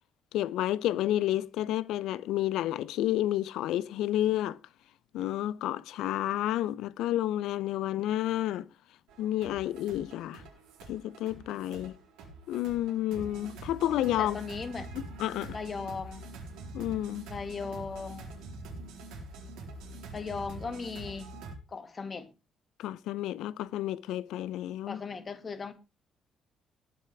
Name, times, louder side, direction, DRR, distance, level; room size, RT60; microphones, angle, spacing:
voice 1, 0.3-4.6 5.1-8.6 9.2-10.4 10.9-12.0 12.5-14.4 14.9-15.6 16.7-17.3 22.8-25.0, left 13 dB, 70° left, 0.6 m, -30 dB
sound 1, 9.1-21.6, right 2 dB, 75° right, 4.1 m, -45 dB
voice 2, 14.2-14.9 15.5-16.3 17.3-18.3 20.1-21.3 21.7-22.3 24.9-25.7, left 5 dB, 40° left, 2.1 m, -37 dB
19.5 x 7.8 x 3.5 m
hypercardioid pair, 45°, 0 cm